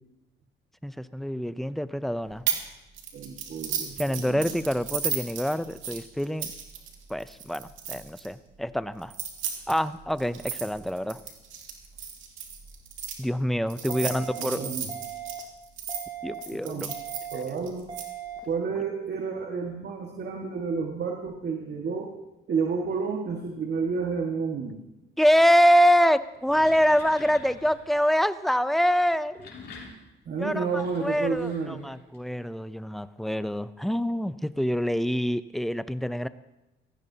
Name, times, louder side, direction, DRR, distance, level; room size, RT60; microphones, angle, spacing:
voice 1, 0.8-2.4 4.0-6.5 7.1-9.1 9.7-11.2 13.2-14.7 16.2-16.9 25.2-29.5 30.4-36.3, equal, ahead, 13 dB, 0.5 m, -25 dB
sound 1, 2.5-2.7 3.0-8.3 9.0-13.1 13.7-16.0 16.4-18.0, right 8 dB, 85° right, 2.2 m, -34 dB
voice 2, 3.1-4.5 13.9-14.9 16.6-16.9 17.3-17.9 18.5-22.1 22.5-24.8 30.3-31.8, right 5 dB, 60° right, 1 dB, 1.8 m, -31 dB
sound 2, 13.9-14.4 14.9-15.4 15.9-16.4 16.9-17.4 17.9-18.4, right 10 dB, 25° right, 3.6 m, -38 dB
sound 3, 26.2-27.9 29.1-32.2, left 4 dB, 55° left, 4.0 m, -47 dB
17.0 x 15.0 x 2.8 m, 0.97 s
cardioid pair, 90°, 20 cm